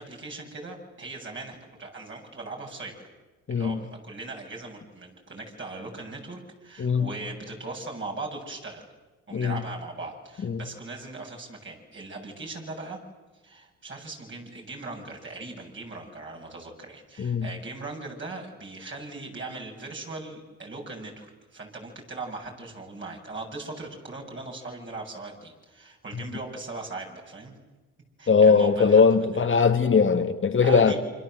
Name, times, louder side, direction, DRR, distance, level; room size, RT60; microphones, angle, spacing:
voice 1, 0.0-3.1 3.5-8.8 9.3-13.0 13.4-27.5 28.2-29.4 30.6-31.0, right 3 dB, 40° right, 0 dB, 7.7 m, -39 dB
voice 2, 3.5-3.8 6.8-7.1 9.3-9.6 10.4-10.6 17.2-17.5 28.3-30.9, left 5 dB, 40° left, 6 dB, 2.3 m, -20 dB
28.0 x 26.0 x 8.0 m, 1.2 s
cardioid pair, 90°, 30 cm